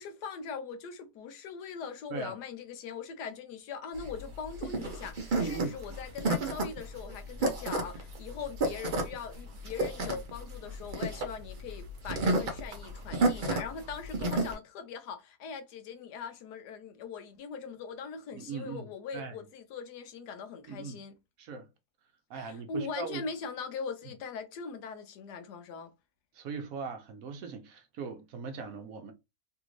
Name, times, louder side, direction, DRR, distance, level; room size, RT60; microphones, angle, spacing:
voice 1, 0.0-21.2 22.3-25.9, left 5 dB, 90° left, 1.2 m, -41 dB
sound 1, 3.9-14.5, right 2 dB, 50° right, 0.6 m, -31 dB
voice 2, 5.4-5.8 13.1-13.5 18.3-19.4 20.7-21.0 21.4-21.7 22.3-23.2 26.3-29.1, right 5 dB, 65° right, 1.1 m, -40 dB
3.4 x 2.5 x 3.0 m
omnidirectional pair, 1.7 m